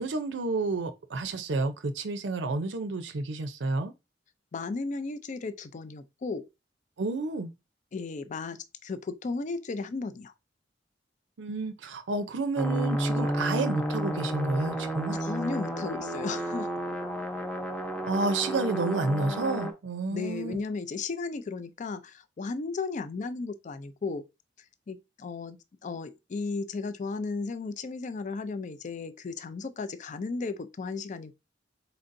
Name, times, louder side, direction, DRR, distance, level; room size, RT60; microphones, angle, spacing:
voice 1, 0.0-3.9 7.0-7.5 11.4-15.2 18.0-20.6, right 3 dB, 75° right, 0.5 m, -30 dB
voice 2, 4.5-6.5 7.9-10.3 15.1-16.7 20.1-24.3 24.9-31.3, left 4 dB, 40° left, 0.4 m, -35 dB
sound 1, 12.6-19.7, equal, 5° left, 0.7 m, -31 dB
4.4 x 3.9 x 2.5 m
head